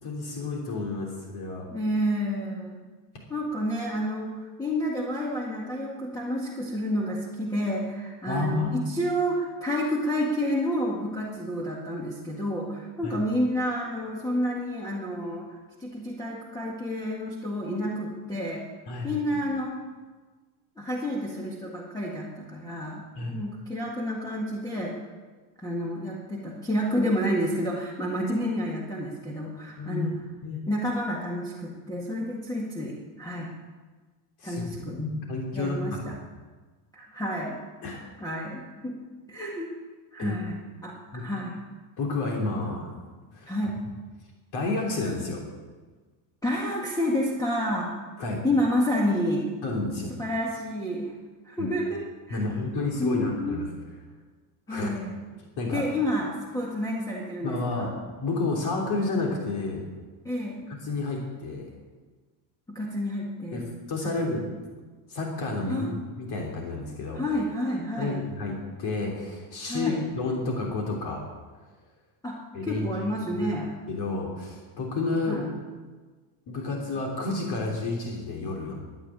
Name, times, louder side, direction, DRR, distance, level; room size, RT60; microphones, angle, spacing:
voice 1, 0.0-1.7 8.2-8.8 13.0-13.1 18.9-19.4 23.1-23.4 29.8-30.1 30.4-30.6 34.4-34.7 35.0-36.0 37.8-38.0 40.2-40.4 41.1-41.2 42.0-42.9 43.3-43.5 44.5-45.4 48.2-48.4 49.6-50.1 51.6-51.7 52.3-53.7 54.7-54.9 55.6-55.8 57.4-57.9 58.2-59.8 60.8-61.7 63.5-64.5 65.1-65.9 66.2-67.2 68.0-71.2 72.5-72.9 73.3-73.5 73.9-75.4 76.5-78.8, left 3 dB, 50° left, 0 dB, 3.3 m, -30 dB
voice 2, 1.7-2.8 3.3-18.6 19.0-19.8 20.8-23.0 23.3-25.0 25.6-30.1 30.7-33.5 34.4-35.0 35.5-36.1 36.9-37.6 38.2-39.0 39.3-39.7 40.1-41.5 43.5-43.8 46.4-47.9 48.4-49.5 50.2-51.1 51.4-52.0 52.3-52.4 53.0-53.6 54.7-55.2 55.7-57.9 60.3-60.7 62.7-63.7 64.0-64.2 65.7-65.9 67.1-68.2 69.7-70.0 72.2-72.4 72.6-73.7 75.3-75.5, equal, 10° left, -3 dB, 1.8 m, -29 dB
13.5 x 9.5 x 9.4 m, 1.4 s
cardioid pair, 160°, 48 cm